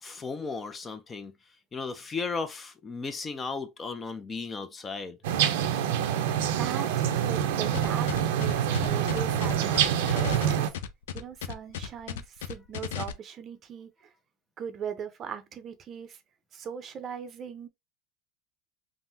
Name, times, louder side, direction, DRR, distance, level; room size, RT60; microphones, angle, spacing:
voice 1, 0.0-1.3 1.7-5.2, left 4 dB, 20° left, 0.4 m, -35 dB
sound 1, 5.2-10.7, right 9 dB, 80° right, 0.5 m, -26 dB
voice 2, 7.1-8.1 8.3-10.7 11.1-14.1 14.6-16.2 16.5-17.7, right 7 dB, 35° right, 0.6 m, -39 dB
sound 2, 7.7-13.1, left 10 dB, 90° left, 0.3 m, -35 dB
3.6 x 2.0 x 2.7 m
supercardioid pair, 120°, 0 cm